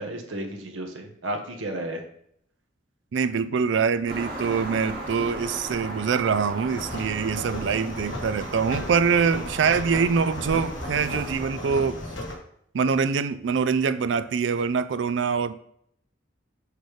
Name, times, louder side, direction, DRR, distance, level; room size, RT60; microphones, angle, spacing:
voice 1, 0.0-2.0, right 1 dB, 90° right, 3 dB, 1.1 m, -33 dB
voice 2, 3.1-12.0 12.7-15.6, right 6 dB, 70° right, 12 dB, 0.4 m, -24 dB
sound 1, 4.1-11.5, right 1 dB, 50° right, 2.7 m, -37 dB
sound 2, 6.7-12.3, left 1 dB, 75° left, 1.3 m, -35 dB
6.5 x 5.0 x 3.2 m, 0.70 s
head